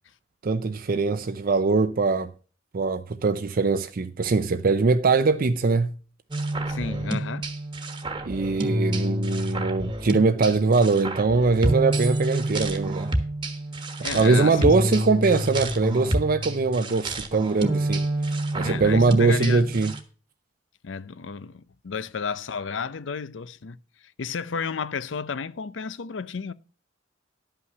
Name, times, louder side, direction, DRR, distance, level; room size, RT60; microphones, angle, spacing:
voice 1, 0.4-2.3 2.7-5.9 8.2-13.1 14.1-18.0 18.5-19.9, right 3 dB, 50° right, 0.5 m, -22 dB
sound 1, 6.3-20.0, right 1 dB, 25° right, 1.3 m, -28 dB
voice 2, 6.7-7.5 14.0-14.7 18.6-19.6 20.8-23.8 24.2-26.5, left 5 dB, 75° left, 0.6 m, -32 dB
11.0 x 5.7 x 6.7 m
head